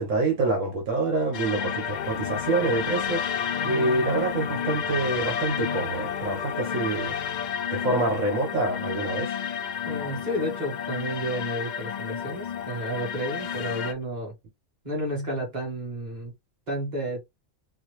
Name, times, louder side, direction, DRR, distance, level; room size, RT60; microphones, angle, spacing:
voice 1, 0.0-7.2 7.7-9.3, right 2 dB, 75° right, 1.4 m, -26 dB
sound 1, 1.3-13.9, left 8 dB, 90° left, 0.4 m, -31 dB
voice 2, 9.8-14.3 14.8-16.3 16.7-17.2, right 1 dB, 35° right, 1.7 m, -31 dB
3.9 x 2.1 x 3.1 m
omnidirectional pair, 1.3 m